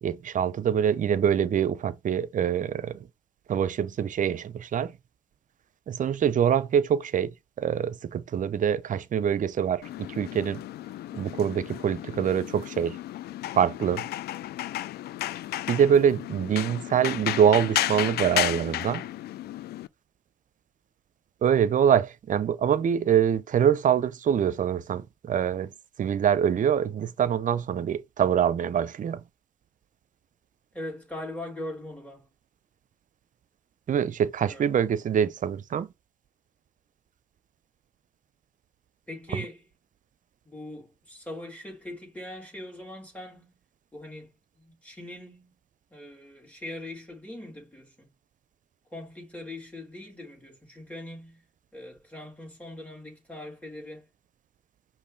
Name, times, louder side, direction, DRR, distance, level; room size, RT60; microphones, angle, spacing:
voice 1, 0.0-3.1 3.5-4.9 5.9-7.3 7.6-10.6 11.1-13.0 13.5-14.0 15.7-19.0 21.4-25.7 26.0-29.2 33.9-35.9, right 8 dB, 45° right, 0.6 m, -24 dB
sound 1, 9.8-19.9, left 14 dB, 60° left, 0.4 m, -33 dB
voice 2, 30.7-32.3 34.5-34.7 39.1-39.7 40.4-43.6 43.9-45.6 45.9-48.1 48.8-51.4 51.7-54.1, left 1 dB, 10° left, 2.9 m, -41 dB
5.2 x 2.6 x 3.9 m
hypercardioid pair, 60°, 18 cm